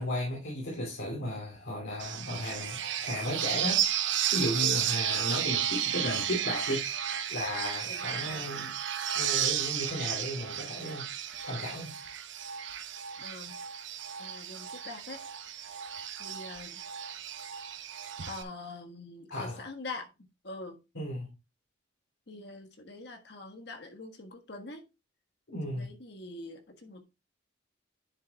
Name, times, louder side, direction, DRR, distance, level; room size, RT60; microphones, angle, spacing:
voice 1, 0.0-6.8 7.3-8.7 9.2-11.9 19.3-19.6 20.9-21.3 25.5-25.9, left 1 dB, 80° left, 3.0 m, -35 dB
sound 1, 2.0-18.4, right 10 dB, 70° right, 0.9 m, -33 dB
voice 2, 7.9-8.5 13.2-13.6 14.2-15.2 16.2-16.8 18.2-20.8 22.3-24.8 25.7-27.0, left 2 dB, 60° left, 1.5 m, -44 dB
10.0 x 7.1 x 2.4 m
head